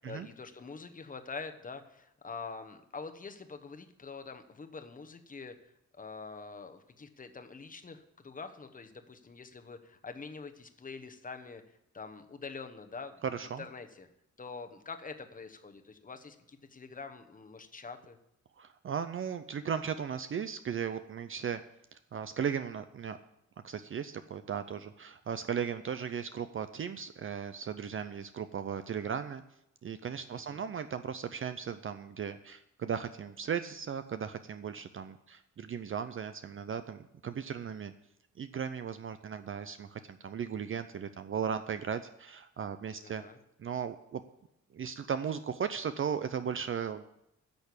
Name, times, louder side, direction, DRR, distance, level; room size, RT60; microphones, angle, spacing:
voice 1, 0.0-5.7 6.0-13.1 13.4-14.1 14.4-18.2 30.3-30.7 43.0-43.4, left 4 dB, 30° left, 7 dB, 1.1 m, -45 dB
voice 2, 13.2-13.6 18.6-21.6 22.1-23.2 23.6-29.4 29.8-37.9 38.4-43.2 43.6-44.2 44.7-47.0, right 7 dB, 45° right, 10 dB, 0.5 m, -36 dB
10.5 x 6.7 x 8.3 m, 0.81 s
wide cardioid pair, 135°, 29 cm